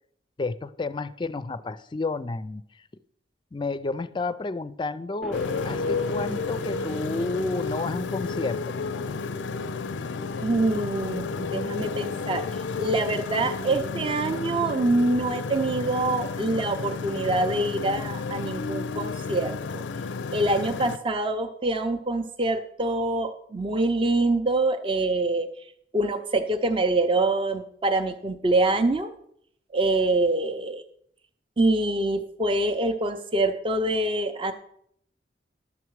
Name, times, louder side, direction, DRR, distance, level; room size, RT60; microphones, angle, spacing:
voice 1, 0.4-2.6 3.5-8.8, left 3 dB, 25° left, 14 dB, 0.4 m, -31 dB
sound 1, 5.2-16.1, right 3 dB, ahead, 0.8 m, -42 dB
Motorcycle, 5.3-21.0, left 4 dB, 90° left, 0.4 m, -32 dB
voice 2, 10.4-12.4 12.8-19.8 20.3-25.5 25.9-29.1 29.7-30.8 31.6-34.5, right 2 dB, 30° right, 6 dB, 0.5 m, -25 dB
11.5 x 6.9 x 4.7 m, 0.69 s
head